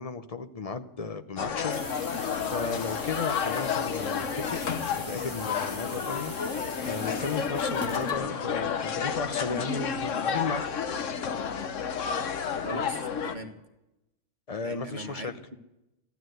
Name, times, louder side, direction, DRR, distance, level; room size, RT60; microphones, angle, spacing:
voice 1, 0.0-1.8 2.5-4.6 5.0-6.3 6.8-10.6 14.5-15.3, left 4 dB, 35° left, 0.7 m, -34 dB
sound 1, 1.4-13.4, left 6 dB, 70° left, 1.3 m, -31 dB
sound 2, 1.7-8.1, left 1 dB, 15° left, 2.3 m, -43 dB
voice 2, 12.6-13.5 14.6-15.6, right 1 dB, 35° right, 1.6 m, -39 dB
15.0 x 11.5 x 7.9 m
omnidirectional pair, 1.3 m